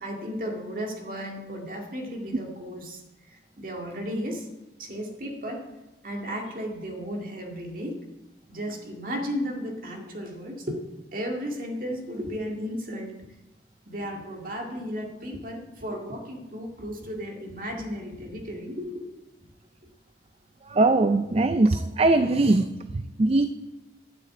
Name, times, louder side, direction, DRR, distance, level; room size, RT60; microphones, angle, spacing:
voice 1, 0.0-3.0 3.3-4.5 4.8-5.7 6.0-8.1 8.5-10.8 11.1-13.1 13.9-19.1, equal, 50° right, 1 dB, 2.2 m, -34 dB
voice 2, 20.6-23.5, right 2 dB, 35° right, 10 dB, 0.4 m, -21 dB
12.0 x 6.9 x 8.6 m, 1.1 s
head